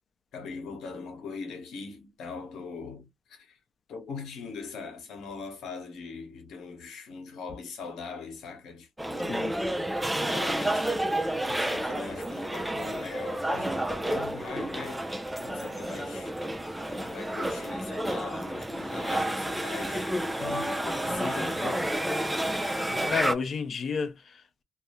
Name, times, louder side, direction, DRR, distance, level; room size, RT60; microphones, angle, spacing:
voice 1, 0.3-3.6 3.9-9.3 10.1-11.1 11.5-16.3 16.9-20.1 20.4-21.9, left 4 dB, 80° left, 1.0 m, -41 dB
sound 1, 9.0-23.3, right 1 dB, 10° right, 0.4 m, -30 dB
voice 2, 22.6-24.6, left 5 dB, 50° left, 0.6 m, -32 dB
2.4 x 2.1 x 2.9 m
cardioid pair, 90°, 0 cm